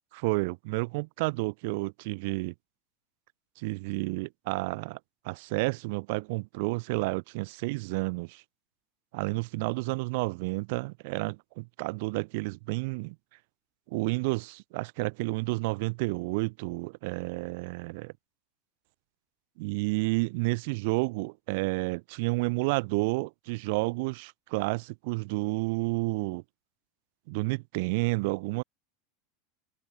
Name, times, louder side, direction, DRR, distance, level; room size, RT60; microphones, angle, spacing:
voice 1, 0.1-2.5 3.6-5.0 5.2-8.4 9.1-13.1 13.9-18.1 19.6-26.4 27.3-28.6, right 27 dB, 60° right, 1.6 m, -30 dB
supercardioid pair, 155°, 0 cm